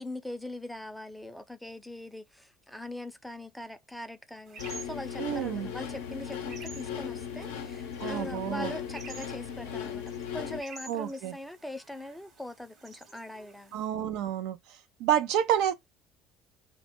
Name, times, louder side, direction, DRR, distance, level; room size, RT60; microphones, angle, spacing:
voice 1, 0.0-10.0 10.3-13.8, left 1 dB, 5° left, 0.4 m, -42 dB
sound 1, 4.5-13.9, right 4 dB, 50° right, 1.0 m, -51 dB
sound 2, 4.6-10.6, left 8 dB, 80° left, 0.5 m, -37 dB
voice 2, 5.2-5.7 8.0-8.7 10.9-11.3 13.7-14.6 15.0-15.7, right 10 dB, 70° right, 0.4 m, -29 dB
2.2 x 2.0 x 2.9 m
hypercardioid pair, 70°, 0 cm